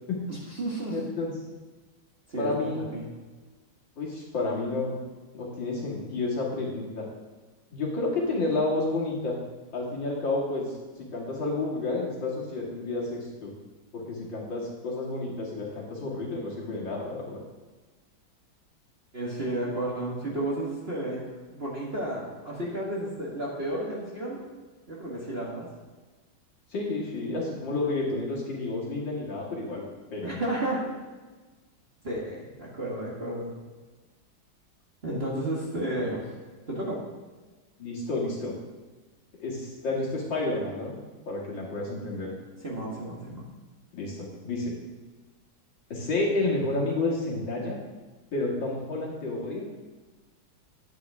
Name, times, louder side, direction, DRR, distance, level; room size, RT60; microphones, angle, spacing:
voice 1, 0.3-1.0 2.3-3.1 19.1-24.4 24.9-25.7 30.2-30.9 32.0-33.6 35.0-36.3 36.7-37.0 42.6-43.4, right 1 dB, 30° right, -5 dB, 1.8 m, -32 dB
voice 2, 0.9-1.3 2.4-2.8 4.0-4.9 5.3-7.1 7.7-9.4 9.7-10.8 11.1-13.5 13.9-17.4 26.7-29.8 30.1-30.5 37.8-38.5 39.4-41.0 41.3-42.3 43.9-44.7 45.9-47.8 48.3-49.7, left 2 dB, 65° left, -4 dB, 3.0 m, -30 dB
11.0 x 9.2 x 3.6 m, 1.3 s
omnidirectional pair, 2.3 m